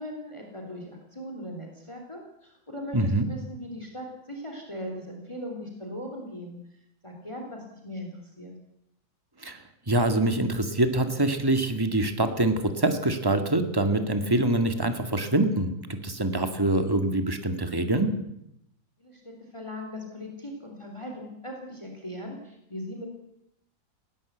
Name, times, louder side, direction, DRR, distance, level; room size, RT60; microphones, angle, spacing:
voice 1, 0.0-6.6 7.0-8.5 19.0-23.1, equal, 15° left, 2 dB, 3.4 m, -39 dB
voice 2, 2.9-3.3 9.4-18.1, right 2 dB, 10° right, 7 dB, 2.0 m, -25 dB
19.5 x 18.0 x 8.2 m, 0.79 s
omnidirectional pair, 2.1 m